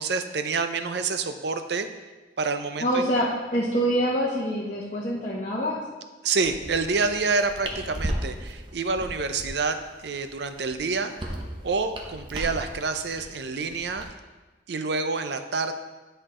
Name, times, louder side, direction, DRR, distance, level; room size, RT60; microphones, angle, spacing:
voice 1, 0.0-1.9 2.4-3.1 6.2-9.8 10.0-11.3 11.6-14.1 14.7-15.7, right 4 dB, 60° right, 8 dB, 0.5 m, -28 dB
voice 2, 2.8-5.8, equal, 40° left, -6 dB, 0.9 m, -25 dB
sound 1, 6.4-14.0, right 1 dB, 25° right, 0.7 m, -37 dB
10.0 x 4.5 x 3.7 m, 1.2 s
head